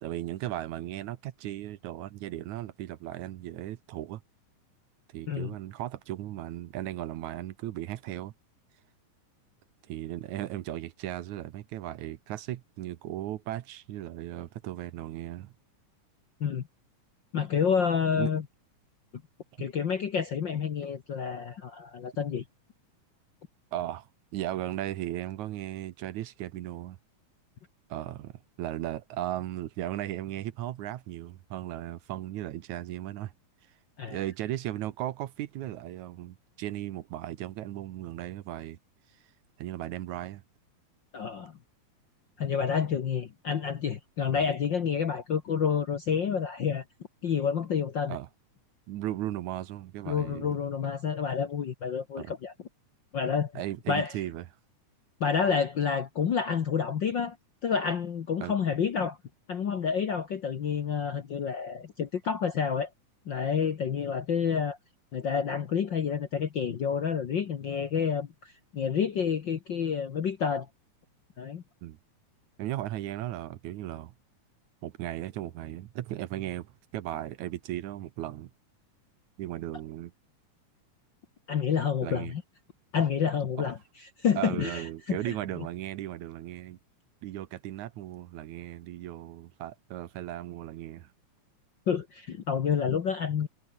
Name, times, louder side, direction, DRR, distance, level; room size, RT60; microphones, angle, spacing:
voice 1, 0.0-4.2 5.1-8.3 9.8-15.5 18.2-18.3 19.6-19.7 23.7-24.1 24.3-27.0 27.9-33.3 34.1-38.8 39.6-40.4 44.3-44.5 48.1-48.3 48.9-50.6 52.2-52.3 53.6-54.4 58.4-58.5 71.8-72.0 72.6-74.1 74.8-78.5 79.4-80.1 82.0-82.3 83.6-83.7 84.4-86.8 87.2-91.1, right 13 dB, 75° right, 2.2 m, -36 dB
voice 2, 17.3-18.4 19.6-22.4 34.0-34.2 41.1-41.5 42.4-46.8 47.2-48.2 50.1-52.5 53.1-53.5 53.9-54.1 55.2-57.4 57.6-59.2 59.5-62.9 63.2-64.8 65.1-70.7 71.4-71.6 81.5-82.4 82.9-83.8 84.2-85.3 91.9-93.5, left 7 dB, 55° left, 1.3 m, -29 dB
omnidirectional pair, 3.7 m